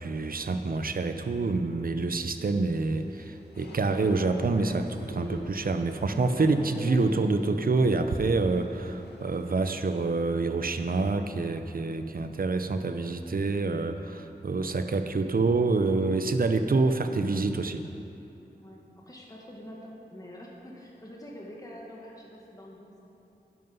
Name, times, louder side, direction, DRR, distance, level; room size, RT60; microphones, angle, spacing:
voice 1, 0.0-17.8, right 3 dB, 60° right, 8 dB, 0.8 m, -27 dB
sound 1, 3.0-9.6, left 2 dB, 85° left, 1.6 m, -44 dB
voice 2, 18.5-23.0, equal, 20° left, -3 dB, 1.9 m, -46 dB
11.0 x 11.0 x 5.5 m, 2.8 s
wide cardioid pair, 75°, 17 cm